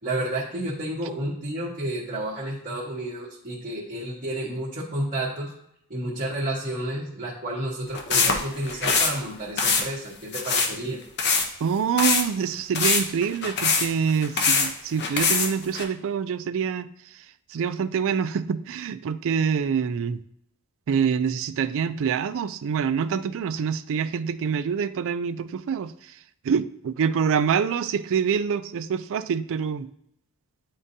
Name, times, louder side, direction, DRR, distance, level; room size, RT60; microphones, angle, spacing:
voice 1, 0.0-5.5 5.9-11.0, right 1 dB, 35° right, -9 dB, 1.4 m, -31 dB
sound 1, 7.9-9.2 9.6-9.8 10.3-10.7 11.2-11.4 12.0-12.2 12.7-14.7 15.0-15.8, left 5 dB, 50° left, 0.8 m, -22 dB
voice 2, 11.6-20.2 20.9-26.2 26.4-29.9, right 7 dB, 60° right, 12 dB, 0.4 m, -26 dB
9.5 x 3.7 x 2.7 m, 0.74 s
head